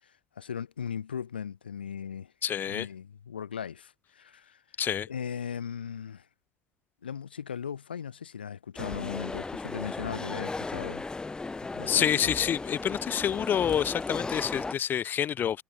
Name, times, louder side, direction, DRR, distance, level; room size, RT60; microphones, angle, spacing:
voice 1, 0.0-2.3 2.7-4.6 5.1-6.3 7.0-11.0 11.7-12.1, left 7 dB, 80° left, 6.8 m, -38 dB
voice 2, 2.4-2.9 4.8-5.1 11.9-15.6, left 9 dB, 40° left, 4.0 m, -28 dB
sound 1, 8.8-14.7, left 3 dB, 15° left, 2.0 m, -36 dB
figure-of-eight pair, 70°, 5 cm